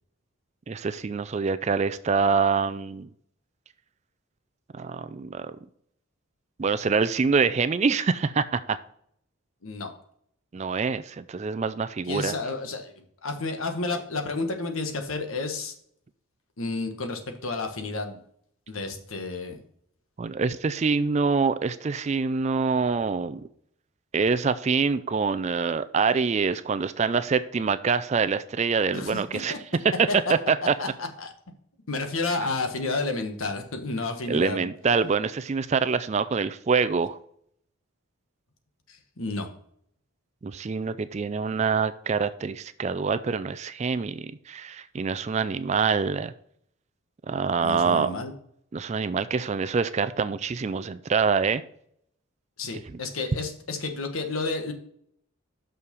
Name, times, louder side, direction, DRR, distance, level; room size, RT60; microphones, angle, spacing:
voice 1, 0.7-3.1 4.7-5.6 6.6-8.8 10.5-12.3 20.2-23.5 24.1-29.5 30.3-30.7 34.3-37.2 40.4-46.3 47.3-48.1 48.7-51.6, right 5 dB, 30° right, 13 dB, 0.3 m, -25 dB
voice 2, 12.1-15.7 16.6-18.2 18.7-19.6 28.9-29.6 30.1-30.2 30.8-31.3 31.9-34.7 38.9-39.5 47.6-48.3 52.6-54.7, left 3 dB, 75° left, 5 dB, 1.3 m, -31 dB
6.4 x 5.6 x 5.2 m, 0.67 s
head